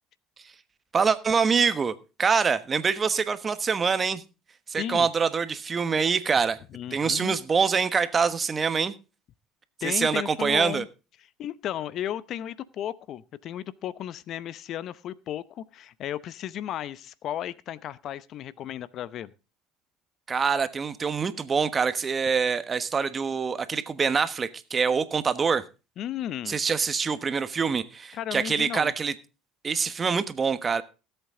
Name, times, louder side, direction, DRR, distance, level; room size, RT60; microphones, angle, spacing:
voice 1, 0.9-4.2 4.7-6.6 6.9-8.9 9.8-10.8 20.3-25.6 26.5-29.1 29.6-30.8, right 5 dB, 30° right, 13 dB, 1.2 m, -25 dB
voice 2, 4.8-5.1 6.7-7.4 9.8-10.9 11.4-19.3 26.0-26.6 28.1-28.9, left 11 dB, 55° left, 18 dB, 0.7 m, -34 dB
17.5 x 8.2 x 3.7 m, 0.31 s
hypercardioid pair, 80°, 0 cm